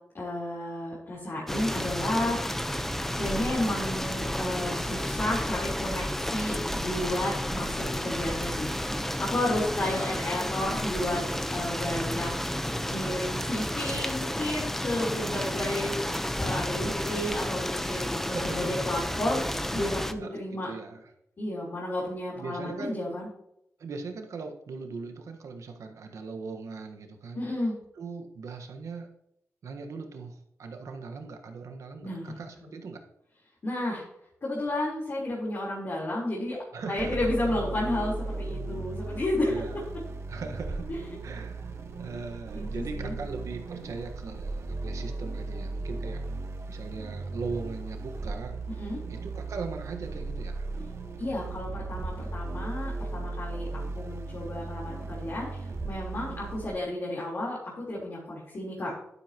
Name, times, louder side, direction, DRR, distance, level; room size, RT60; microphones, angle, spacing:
voice 1, 0.1-2.7 3.1-8.7 9.2-11.2 11.5-12.3 12.9-19.4 19.7-20.7 21.4-23.3 27.3-27.8 32.0-32.4 33.6-34.0 34.4-36.6 36.9-39.5 40.9-41.0 42.5-43.1 48.8-49.0 51.2-53.7 53.9-58.9, left 1 dB, 50° left, -6 dB, 3.9 m, -32 dB
sound 1, 1.5-20.1, equal, 5° left, 0.8 m, -31 dB
voice 2, 18.3-19.0 20.2-21.1 22.3-23.0 23.8-27.4 27.9-29.1 29.6-33.0 36.7-37.2 37.8-37.9 39.5-39.8 40.3-40.9 41.2-46.2 46.7-48.6 49.1-50.7, right 4 dB, 80° right, 5 dB, 1.4 m, -39 dB
sound 2, 37.0-56.7, right 3 dB, 60° right, 1.4 m, -36 dB
11.5 x 9.8 x 3.0 m, 0.79 s
cardioid pair, 60°, 5 cm